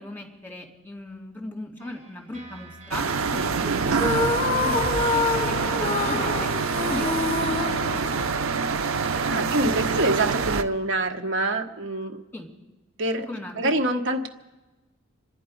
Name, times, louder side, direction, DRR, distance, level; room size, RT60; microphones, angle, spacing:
voice 1, 0.0-3.1 3.3-6.5 6.9-8.3 9.3-9.9 12.3-12.5 13.3-13.7, left 2 dB, 10° left, 1 dB, 2.4 m, -37 dB
sound 1, 1.8-8.0, equal, 35° right, 4.8 m, -44 dB
sound 2, 2.9-10.6, right 5 dB, 90° right, 0.7 m, -26 dB
sound 3, 3.9-8.7, left 4 dB, 35° left, 0.9 m, -27 dB
voice 2, 9.2-12.2 13.0-13.2 13.6-14.3, right 2 dB, 65° right, 4 dB, 1.3 m, -25 dB
26.0 x 10.5 x 5.3 m, 1.1 s
head